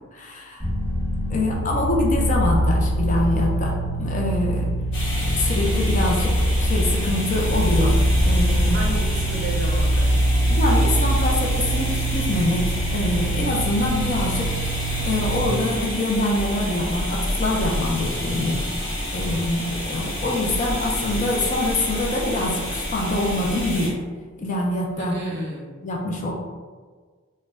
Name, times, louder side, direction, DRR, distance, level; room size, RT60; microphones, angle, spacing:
voice 1, 0.1-0.7 1.3-4.7 5.3-8.8 10.5-14.5 15.0-18.6 19.1-24.0 24.4-25.2 25.8-26.3, left 1 dB, 35° left, -1 dB, 0.3 m, -25 dB
sound 1, 0.6-15.5, right 1 dB, 20° left, 0.9 m, -23 dB
sound 2, 4.9-23.9, left 1 dB, 90° left, 0.9 m, -28 dB
voice 2, 8.6-10.3 25.0-25.7, right 1 dB, 50° right, -2 dB, 0.5 m, -32 dB
2.2 x 2.0 x 3.4 m, 1.5 s
head